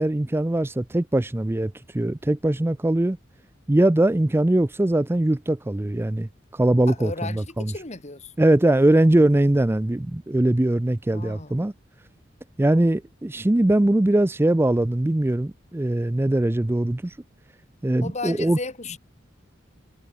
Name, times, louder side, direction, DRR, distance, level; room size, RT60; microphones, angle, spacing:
voice 1, 0.0-3.2 3.7-7.7 8.4-11.7 12.6-17.2 17.8-18.6, right 1 dB, 10° right, 0.4 m, -21 dB
voice 2, 6.9-8.3 11.1-11.6 18.0-19.0, left 3 dB, 35° left, 2.5 m, -35 dB
head